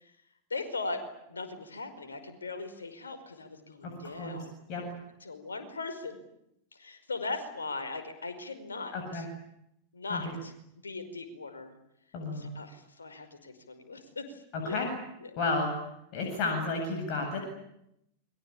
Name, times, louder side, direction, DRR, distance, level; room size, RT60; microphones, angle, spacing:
voice 1, 0.5-1.0 1.3-4.6 5.2-6.2 6.7-9.2 9.9-10.5 10.8-11.7 12.3-14.9 15.2-15.3, left 3 dB, 75° left, 8 dB, 5.2 m, -39 dB
voice 2, 3.8-4.9 8.9-9.3 10.1-10.3 12.1-12.5 14.5-14.9 15.4-15.7 16.1-17.4, left 3 dB, 45° left, 2 dB, 7.9 m, -32 dB
29.0 x 23.5 x 8.6 m, 0.79 s
figure-of-eight pair, 90°, 0 cm